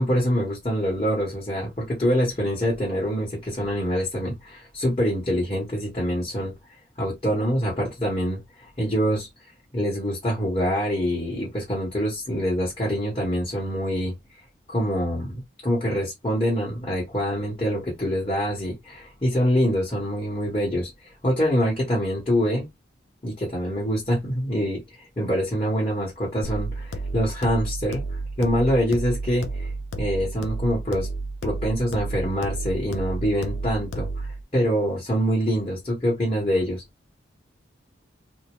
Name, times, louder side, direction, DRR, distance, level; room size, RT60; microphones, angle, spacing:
voice 1, 0.0-6.5 7.0-8.4 8.8-9.3 9.7-14.1 14.7-20.9 21.2-22.7 23.2-24.8 25.2-28.0 28.4-29.7 30.0-31.1 31.4-34.1 34.5-36.8, equal, 30° left, 1.2 m, -25 dB
sound 1, 26.4-34.4, right 2 dB, 75° left, 0.5 m, -31 dB
2.7 x 2.0 x 3.0 m
head